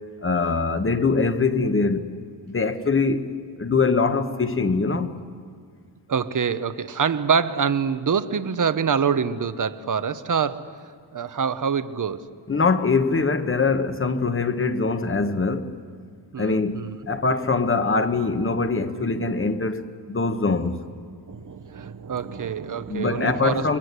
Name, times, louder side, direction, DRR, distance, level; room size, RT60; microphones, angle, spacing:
voice 1, 0.2-2.1 2.5-3.3 3.6-5.1 12.5-15.7 16.4-20.8 22.9-23.8, left 4 dB, 25° left, 1.2 m, -23 dB
voice 2, 6.1-10.7 11.1-12.3 16.3-17.0 20.4-20.7 21.3-23.8, right 6 dB, 40° right, 1.0 m, -25 dB
29.5 x 23.0 x 8.2 m
wide cardioid pair, 175°, 47 cm